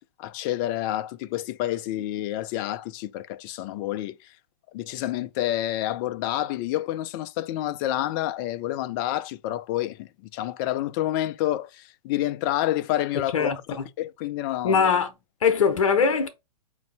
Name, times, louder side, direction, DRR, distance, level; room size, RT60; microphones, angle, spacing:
voice 1, 0.2-4.3 4.7-14.8, left 14 dB, 35° left, 0.3 m, -29 dB
voice 2, 14.6-15.1 15.4-16.3, left 6 dB, 65° left, 0.7 m, -21 dB
5.1 x 2.6 x 3.3 m
figure-of-eight pair, 105°, 18 cm